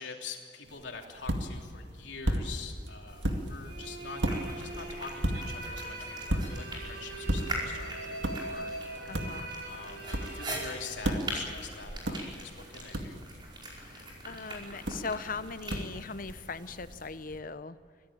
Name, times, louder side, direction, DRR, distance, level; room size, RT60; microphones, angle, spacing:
voice 1, 0.0-8.1 8.4-8.7 9.6-13.2, left 5 dB, 90° left, 2 dB, 3.1 m, -45 dB
sound 1, 0.6-17.4, equal, 80° right, 2.3 m, -37 dB
sound 2, 3.1-17.1, right 1 dB, 25° right, 5.2 m, -43 dB
sound 3, 3.6-11.4, right 2 dB, 60° right, 6.3 m, -42 dB
voice 2, 9.1-9.5 13.8-17.8, left 4 dB, 50° left, 13 dB, 0.8 m, -39 dB
24.5 x 16.5 x 8.8 m, 2.4 s
head